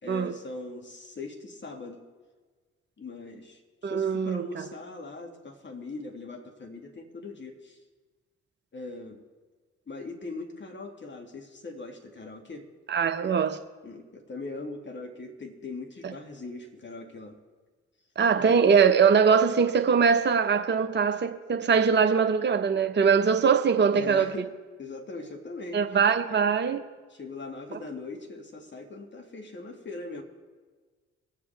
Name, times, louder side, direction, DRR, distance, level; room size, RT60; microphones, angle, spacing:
voice 1, 0.0-2.0 3.0-7.8 8.7-9.2 9.9-12.7 13.8-17.4 18.4-18.6 23.9-24.5 24.8-25.8 27.1-30.2, left 3 dB, 35° left, 2.3 m, -40 dB
voice 2, 3.8-4.4 12.9-13.6 18.2-24.3 25.7-26.8, right 6 dB, 35° right, 1.0 m, -22 dB
22.5 x 7.7 x 3.5 m
hypercardioid pair, 50°, 31 cm